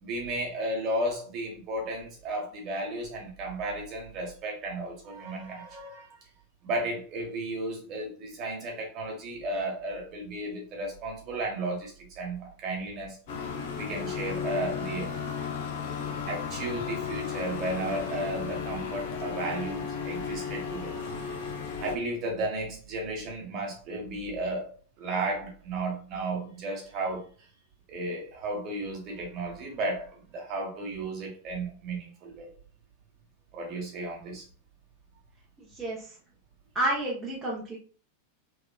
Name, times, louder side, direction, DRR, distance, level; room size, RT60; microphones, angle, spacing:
voice 1, 0.0-6.1 6.6-13.5 13.7-15.1 16.3-21.0 21.8-24.7 25.0-27.5 27.9-32.5 33.5-34.4, right 2 dB, 35° right, 0 dB, 1.4 m, -34 dB
sound 1, 13.3-21.9, left 6 dB, 50° left, 0.8 m, -34 dB
voice 2, 35.7-36.1 36.7-37.8, right 1 dB, 15° right, -5 dB, 1.0 m, -30 dB
3.5 x 3.2 x 2.3 m, 0.41 s
figure-of-eight pair, 90°, 0 cm